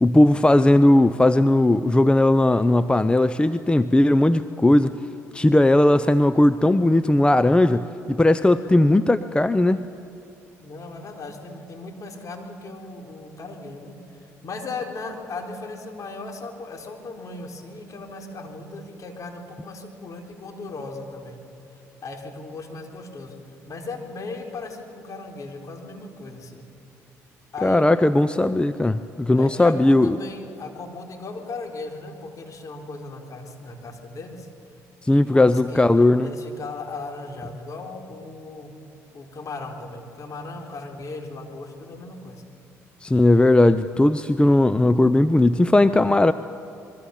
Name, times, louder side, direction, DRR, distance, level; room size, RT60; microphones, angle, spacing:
voice 1, 0.0-5.0 5.3-9.8 27.6-30.2 35.0-36.3 43.0-46.3, left 1 dB, 15° left, 12 dB, 0.7 m, -18 dB
voice 2, 10.6-21.4 22.0-26.7 27.5-27.9 29.3-34.5 35.1-38.7 39.1-42.4, left 3 dB, 45° left, 3 dB, 4.1 m, -37 dB
25.5 x 22.5 x 7.2 m, 2.7 s
hypercardioid pair, 55°, 8 cm